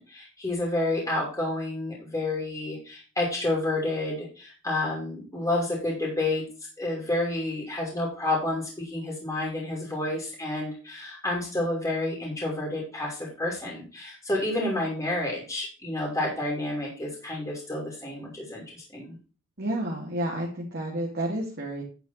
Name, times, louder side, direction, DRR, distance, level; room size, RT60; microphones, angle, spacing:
voice 1, 0.0-6.4 6.8-19.2, left 2 dB, 15° left, -3 dB, 2.9 m, -30 dB
voice 2, 19.6-21.8, right 1 dB, 55° right, -3 dB, 2.3 m, -30 dB
10.0 x 4.6 x 5.4 m, 0.36 s
head